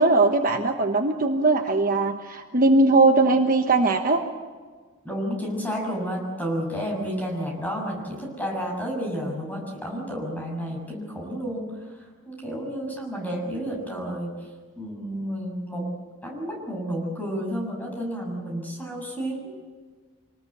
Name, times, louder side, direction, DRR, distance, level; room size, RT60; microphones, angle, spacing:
voice 1, 0.0-4.2, right 2 dB, 40° right, 4 dB, 1.2 m, -20 dB
voice 2, 5.0-11.8 12.3-14.4 14.8-15.9 16.2-19.5, equal, 10° left, -1 dB, 7.0 m, -31 dB
26.5 x 19.5 x 8.0 m, 1.5 s
head